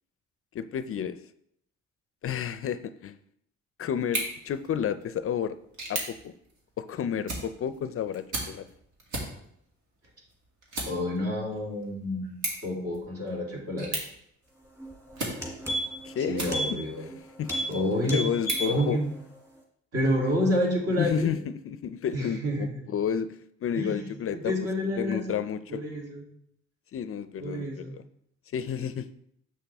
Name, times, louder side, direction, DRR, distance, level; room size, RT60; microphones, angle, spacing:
voice 1, 0.5-1.2 2.2-3.1 3.8-5.5 5.9-6.4 6.8-8.7 16.0-16.4 17.4-17.5 18.1-19.0 21.0-24.7 25.0-25.8 26.9-28.0 28.5-29.1, left 8 dB, 50° left, 12 dB, 0.4 m, -31 dB
sound 1, 4.0-17.0 17.5-19.5, right 2 dB, 80° right, 2.3 m, -39 dB
voice 2, 10.9-14.0 16.2-17.1 17.7-18.3 18.7-19.1 19.9-21.3 22.1-22.7 23.7-25.4 25.7-26.2 27.4-27.9, left 1 dB, 50° right, -2 dB, 2.7 m, -29 dB
sound 2, 14.8-14.9 15.2-16.1 16.5-16.7 17.0-17.2 17.4-17.7 18.0-18.8 19.1-19.2, right 1 dB, 10° right, 2.3 m, -31 dB
7.6 x 5.9 x 3.4 m, 0.72 s
cardioid pair, 90°, 30 cm